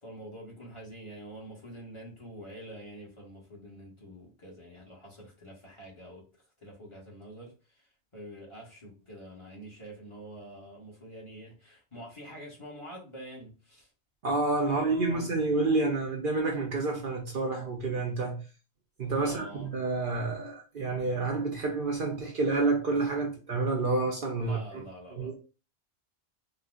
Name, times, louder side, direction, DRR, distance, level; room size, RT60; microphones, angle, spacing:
voice 1, 0.0-7.9 8.1-13.9 14.6-15.3 19.1-19.7 24.4-25.4, right 1 dB, 25° left, 1.2 m, -46 dB
voice 2, 14.2-18.4 19.0-24.8 25.1-25.4, right 3 dB, 55° right, 0.8 m, -29 dB
3.9 x 2.3 x 2.4 m
omnidirectional pair, 1.2 m